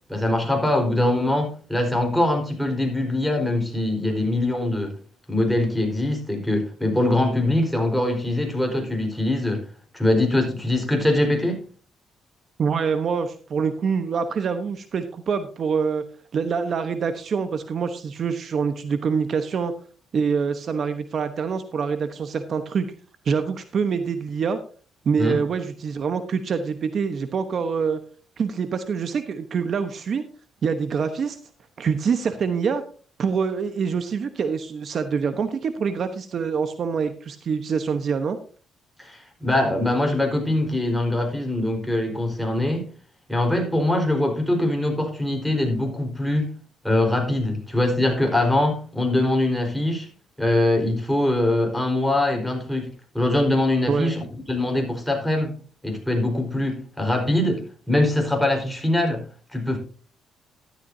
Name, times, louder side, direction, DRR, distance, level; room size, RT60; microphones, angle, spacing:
voice 1, 0.1-5.0 5.3-9.6 9.9-11.6 25.2-25.4 39.0-42.9 43.3-46.6 46.8-50.1 50.4-55.6 55.8-59.2 59.5-59.8, left 1 dB, ahead, 4.4 m, -23 dB
voice 2, 12.6-16.0 16.3-19.7 20.1-22.9 23.2-24.6 25.0-28.0 28.4-30.2 30.6-31.4 31.8-32.8 33.2-38.4 53.9-54.1, right 6 dB, 55° right, 1.0 m, -25 dB
13.0 x 12.0 x 2.7 m
cardioid pair, 90°, 0 cm